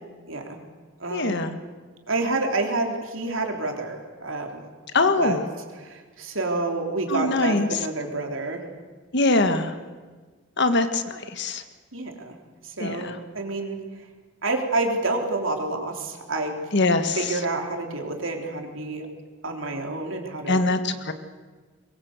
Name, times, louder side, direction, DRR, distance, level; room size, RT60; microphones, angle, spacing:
voice 1, 0.3-0.6 1.0-1.5 2.1-4.6 5.2-5.4 5.8-8.6 11.9-12.4 12.6-13.8 14.4-16.6 17.2-19.1 19.4-20.6, right 2 dB, 75° right, 2 dB, 3.6 m, -28 dB
voice 2, 1.1-1.6 4.9-5.5 7.1-7.8 9.1-9.7 10.6-11.6 12.8-13.2 16.7-17.4 20.5-21.1, left 2 dB, 60° left, 8 dB, 1.6 m, -23 dB
22.5 x 21.5 x 8.2 m, 1.4 s
head